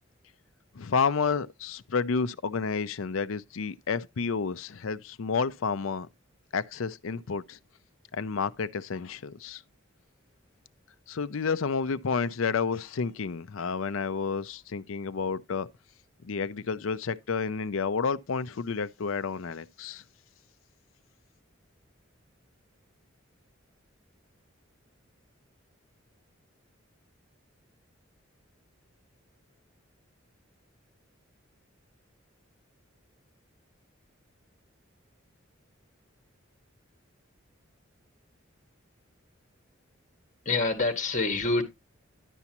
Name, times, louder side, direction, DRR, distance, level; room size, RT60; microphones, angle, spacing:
voice 1, 0.7-6.1 6.5-7.6 8.1-9.6 11.1-15.7 16.2-20.0, left 5 dB, 85° left, 0.6 m, -30 dB
voice 2, 40.4-41.6, left 3 dB, 40° left, 1.7 m, -26 dB
11.0 x 7.1 x 2.9 m
head